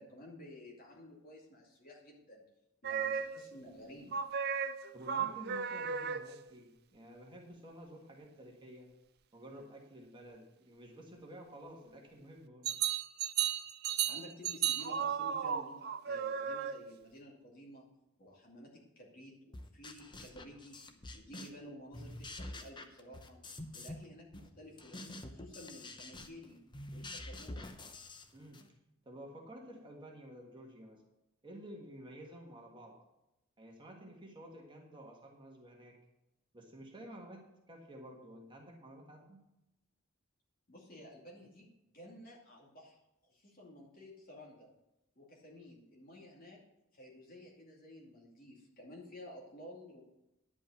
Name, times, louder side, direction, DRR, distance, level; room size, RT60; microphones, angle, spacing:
voice 1, 0.0-2.4 2.8-4.2 14.1-17.9 18.2-20.8 21.1-23.4 23.7-26.6 26.9-27.7 40.7-43.0 43.3-44.7 45.2-46.6 46.9-50.0, left 1 dB, 40° left, -2 dB, 2.5 m, -53 dB
sound 1, 2.8-3.6 4.1-6.5 12.6-17.1, right 8 dB, 50° right, 0.4 m, -35 dB
voice 2, 4.9-8.9 9.3-12.8 28.3-28.6 29.0-31.0 31.4-33.0 33.6-36.0 36.5-39.4, right 1 dB, 20° right, 0 dB, 1.6 m, -51 dB
sound 2, 19.5-21.7 21.9-24.1 24.3-28.7, left 1 dB, 20° left, 0.7 m, -47 dB
10.5 x 5.3 x 8.4 m, 0.89 s
head